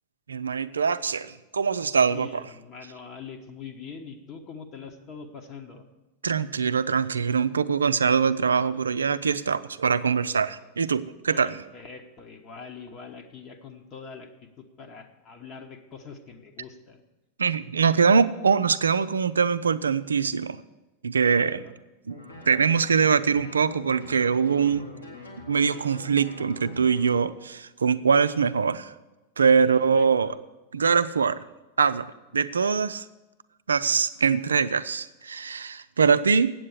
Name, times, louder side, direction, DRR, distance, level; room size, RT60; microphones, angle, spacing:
voice 1, 0.3-2.4 6.2-11.6 17.4-20.6 21.0-21.6 22.1-22.2 22.5-24.9 25.5-28.9 29.4-30.3 30.7-31.4 31.8-32.1 32.3-33.1 33.7-36.5, right 6 dB, 70° right, 14 dB, 0.4 m, -23 dB
voice 2, 2.1-5.8 11.3-17.0 17.8-18.1 21.3-21.7 29.6-30.4, left 5 dB, 35° left, 3 dB, 1.1 m, -43 dB
sound 1, 22.1-27.3, left 2 dB, 85° left, 2.2 m, -43 dB
8.5 x 7.8 x 8.1 m, 1.1 s
figure-of-eight pair, 90°, 0 cm